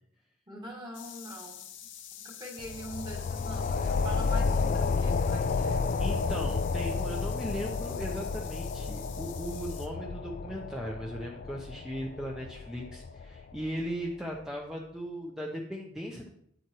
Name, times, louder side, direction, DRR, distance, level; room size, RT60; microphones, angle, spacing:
voice 1, 0.5-1.7 2.2-5.8, equal, 25° right, -1 dB, 2.0 m, -43 dB
sound 1, 0.9-9.9, left 10 dB, 80° left, 0.9 m, -48 dB
sound 2, 2.6-13.8, left 4 dB, 45° left, 0.3 m, -31 dB
voice 2, 6.0-16.3, equal, 5° right, -2 dB, 0.8 m, -38 dB
9.5 x 7.8 x 3.1 m, 0.68 s
head